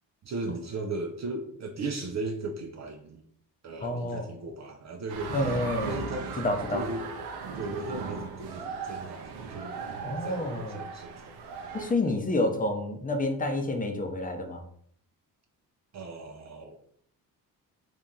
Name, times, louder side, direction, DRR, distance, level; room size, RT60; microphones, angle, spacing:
voice 1, 0.2-3.2 3.6-5.5 5.8-6.4 6.7-7.1 7.5-9.8 10.1-11.4 11.7-12.1 15.9-16.9, right 2 dB, 45° right, 4 dB, 0.6 m, -37 dB
voice 2, 3.8-4.3 5.3-5.9 6.4-6.8 10.0-10.8 11.7-14.6, left 2 dB, 20° left, 4 dB, 0.7 m, -29 dB
sound 1, 5.1-11.9, right 5 dB, 90° right, 0.6 m, -37 dB
2.9 x 2.7 x 3.7 m, 0.64 s
cardioid pair, 70°, 39 cm